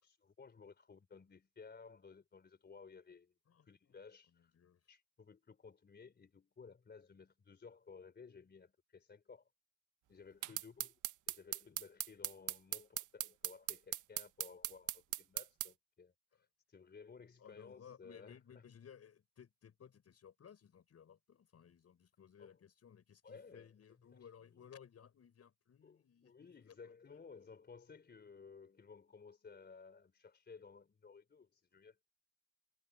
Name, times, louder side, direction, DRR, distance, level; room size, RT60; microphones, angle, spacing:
voice 1, 0.0-3.3 3.6-4.5 4.9-9.5 10.1-10.9 11.3-18.4 22.4-22.5 23.2-23.7 24.1-24.3 25.8-32.0, left 5 dB, 35° left, 3.7 m, -57 dB
voice 2, 3.5-4.0 4.3-4.9 10.5-10.6 16.3-16.5 17.4-27.2, left 8 dB, 55° left, 7.1 m, -60 dB
sound 1, 10.4-15.7, right 14 dB, 85° right, 1.3 m, -40 dB
cardioid pair, 90°, 30 cm